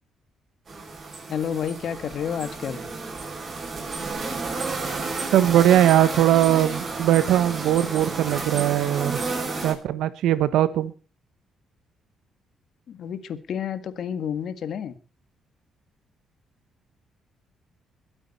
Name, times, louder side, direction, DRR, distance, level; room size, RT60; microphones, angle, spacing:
sound 1, 0.7-9.7, right 3 dB, 40° right, 7.1 m, -31 dB
voice 1, 1.3-2.9 12.9-15.0, left 8 dB, 65° left, 12 dB, 1.7 m, -30 dB
voice 2, 5.3-9.2 9.6-10.9, right 12 dB, 85° right, 14 dB, 1.4 m, -20 dB
22.5 x 8.9 x 4.3 m, 0.36 s
cardioid pair, 90°, 0 cm